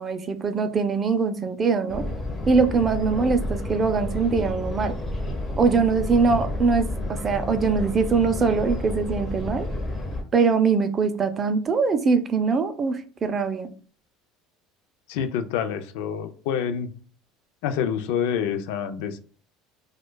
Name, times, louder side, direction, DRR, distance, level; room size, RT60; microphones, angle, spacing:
voice 1, 0.0-2.0 2.5-4.9 5.6-9.7 10.3-13.7, right 5 dB, 25° right, 9 dB, 0.4 m, -22 dB
sound 1, 1.9-10.2, left 1 dB, 20° left, 0.8 m, -30 dB
voice 2, 15.1-16.9 17.6-19.2, left 8 dB, 80° left, 9 dB, 0.4 m, -27 dB
4.4 x 2.2 x 2.2 m, 0.42 s
cardioid pair, 150°, 0 cm